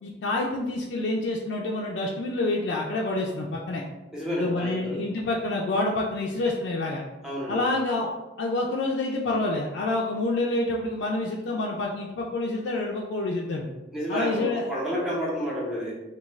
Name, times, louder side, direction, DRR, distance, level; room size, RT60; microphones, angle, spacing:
voice 1, 0.0-3.8 4.3-7.0 7.5-8.1 8.4-13.7 14.1-14.6, left 2 dB, 75° left, -2 dB, 0.3 m, -27 dB
voice 2, 4.1-5.0 7.2-7.6 13.9-15.9, equal, 5° right, -6 dB, 0.8 m, -30 dB
2.4 x 2.3 x 3.0 m, 1.1 s
head